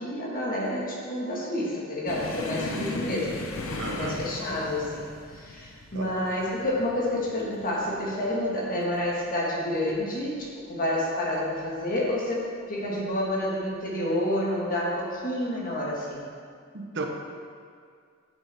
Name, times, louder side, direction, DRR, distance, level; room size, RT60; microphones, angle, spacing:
voice 1, 0.0-3.4 3.9-5.1 5.4-16.2, left 1 dB, 40° left, -4 dB, 1.6 m, -29 dB
sound 1, 2.1-9.3 9.6-10.0 10.3-10.5 11.3-11.9 12.8-13.0 14.4-14.6, left 2 dB, 70° left, 0.8 m, -37 dB
voice 2, 3.8-4.2 5.9-6.1 16.7-17.1, right 3 dB, 55° right, 2 dB, 0.8 m, -34 dB
9.1 x 6.1 x 3.5 m, 2.1 s
head